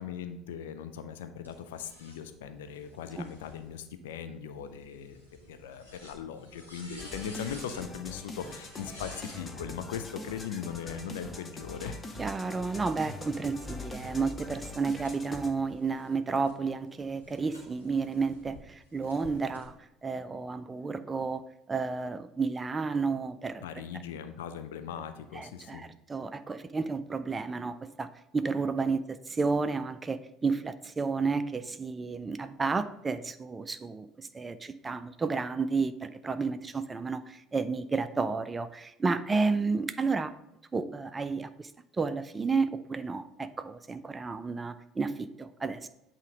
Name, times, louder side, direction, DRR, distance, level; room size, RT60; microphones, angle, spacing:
voice 1, 0.0-12.0 23.6-25.9, left 8 dB, 65° left, 9 dB, 0.4 m, -39 dB
sound 1, 1.4-9.4 10.6-13.0 13.5-18.6 19.0-19.7, left 1 dB, 85° left, 1.3 m, -53 dB
sound 2, 7.0-15.5, left 2 dB, 25° left, 0.7 m, -43 dB
voice 2, 12.2-21.4 21.7-23.6 25.3-40.3 40.7-45.9, right 4 dB, 20° right, 12 dB, 0.4 m, -31 dB
8.1 x 3.0 x 4.8 m, 0.86 s
figure-of-eight pair, 60°, 0 cm